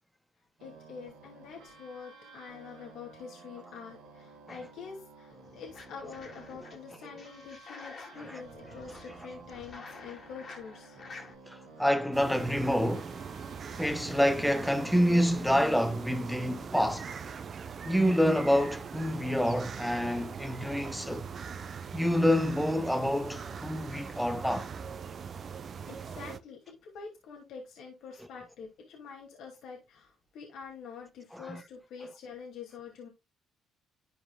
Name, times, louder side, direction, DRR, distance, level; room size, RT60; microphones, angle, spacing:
voice 1, 0.6-11.0 25.8-33.1, left 6 dB, 75° left, 2.3 m, -46 dB
sound 1, 0.6-16.7, right 4 dB, 85° right, 2.0 m, -53 dB
sound 2, 5.4-6.7 7.2-11.3, left 4 dB, 50° left, 2.7 m, -50 dB
voice 2, 11.5-13.2 13.8-17.1 17.8-21.3 21.9-24.7 31.3-31.6, equal, 5° left, 1.1 m, -27 dB
sound 3, 12.1-26.4, right 6 dB, 50° right, 0.7 m, -42 dB
12.0 x 4.8 x 2.3 m
supercardioid pair, 60°, 0 cm